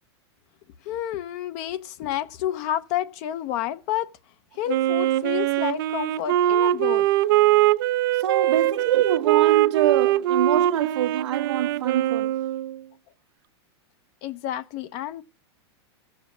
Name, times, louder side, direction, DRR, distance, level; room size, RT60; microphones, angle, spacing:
voice 1, 0.8-4.1 4.6-7.1 14.2-15.2, left 12 dB, 35° left, 0.7 m, -30 dB
Wind instrument woodwind instrument, 4.7-12.8, right 14 dB, 50° right, 0.6 m, -22 dB
voice 2, 8.1-12.3, right 11 dB, 85° right, 1.2 m, -25 dB
15.0 x 7.4 x 7.1 m
supercardioid pair, 165°, 14 cm